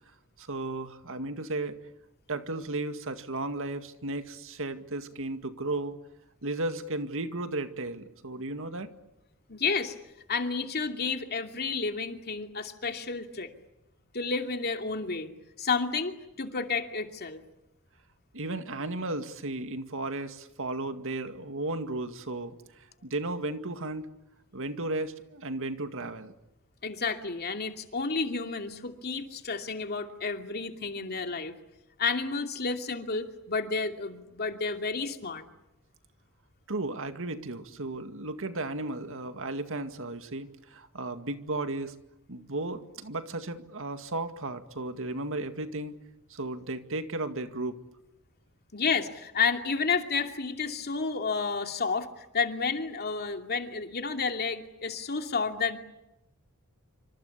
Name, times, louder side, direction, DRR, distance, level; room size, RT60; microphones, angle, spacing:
voice 1, 0.4-1.8 2.3-6.0 6.4-8.9 18.3-24.1 24.5-26.3 36.7-41.9 42.3-46.0 46.3-47.8, right 2 dB, 65° right, 8 dB, 2.1 m, -34 dB
voice 2, 9.5-9.9 10.3-13.5 14.1-15.3 15.6-17.4 26.8-31.5 32.0-35.5 48.7-55.8, left 4 dB, 45° left, 5 dB, 2.6 m, -31 dB
27.0 x 26.0 x 8.5 m, 0.92 s
head